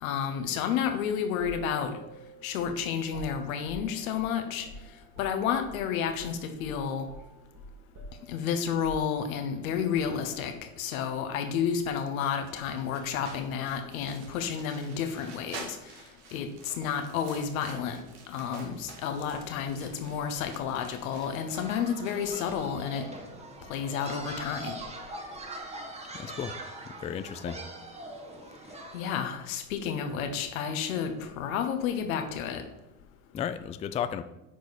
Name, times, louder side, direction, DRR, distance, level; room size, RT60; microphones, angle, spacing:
voice 1, 0.0-2.0 2.4-4.7 5.2-7.0 8.3-15.8 16.3-18.0 18.3-23.0 23.7-24.7 28.9-32.6, left 7 dB, 80° left, 6 dB, 1.3 m, -31 dB
sound 1, 1.4-5.8 6.1-6.3 6.6-9.6, right 1 dB, 40° right, 2.4 m, -47 dB
sound 2, 12.4-22.2, right 4 dB, 65° right, 2.1 m, -49 dB
sound 3, 21.5-29.2, right 1 dB, 15° right, 1.5 m, -42 dB
voice 2, 26.1-26.5 26.9-27.6 33.3-34.2, left 8 dB, 20° left, 12 dB, 0.3 m, -33 dB
9.0 x 4.8 x 4.2 m, 0.94 s
hypercardioid pair, 90°, 41 cm